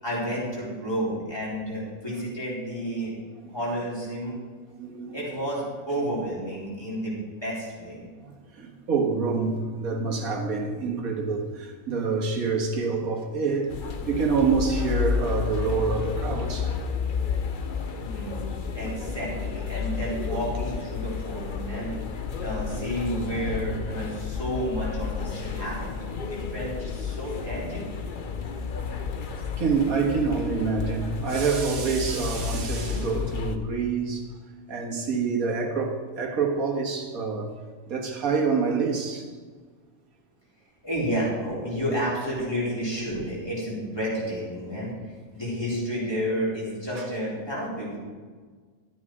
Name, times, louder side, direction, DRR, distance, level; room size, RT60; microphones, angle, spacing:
voice 1, 0.0-3.1 3.5-4.3 5.1-7.1 7.4-8.0 18.0-21.9 22.4-26.0 26.3-27.9 40.8-48.0, equal, 15° left, -7 dB, 4.5 m, -31 dB
voice 2, 4.7-5.2 8.2-16.8 29.4-34.3 34.7-37.6 37.9-39.3 43.0-43.2 47.0-47.1, right 5 dB, 75° right, 1 dB, 2.0 m, -27 dB
sound 1, 13.7-33.6, left 6 dB, 45° left, 0.8 m, -31 dB
12.5 x 9.7 x 4.9 m, 1.5 s
omnidirectional pair, 1.5 m